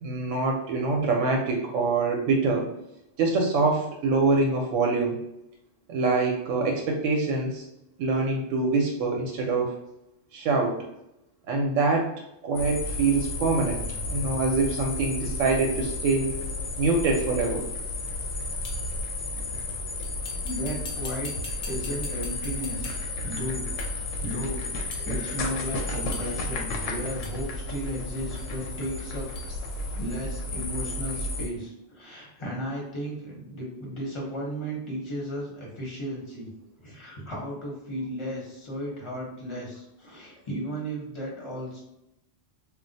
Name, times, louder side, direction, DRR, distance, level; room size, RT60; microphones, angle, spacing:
voice 1, 0.0-2.7 3.2-5.2 5.9-7.6 8.0-9.7 10.3-10.8 11.5-12.1 12.4-13.8 14.1-16.3 16.8-17.6, right 3 dB, 90° right, 1 dB, 0.9 m, -25 dB
sound 1, 12.5-31.5, left 2 dB, 85° left, 0.9 m, -32 dB
sound 2, 17.4-17.5 18.6-19.0 20.0-23.2 23.8-24.1 24.9-25.1 26.1-26.5 27.2-27.5 28.4-28.5 29.3-29.5, left 3 dB, 45° left, 0.5 m, -43 dB
voice 2, 20.4-21.3 21.7-23.7 23.9-24.7 25.0-36.5 36.8-41.8, equal, 25° left, -3 dB, 0.9 m, -35 dB
2.5 x 2.3 x 3.9 m, 0.85 s
omnidirectional pair, 1.3 m